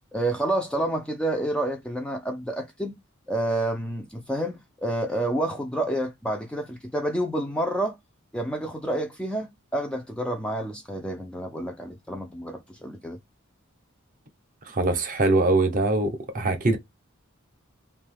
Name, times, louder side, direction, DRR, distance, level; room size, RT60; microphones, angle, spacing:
voice 1, 0.1-3.0 3.3-8.0 8.3-13.2, right 1 dB, 5° left, 0.3 m, -29 dB
voice 2, 14.7-16.8, right 2 dB, 40° right, 0.6 m, -23 dB
2.7 x 2.2 x 3.3 m
head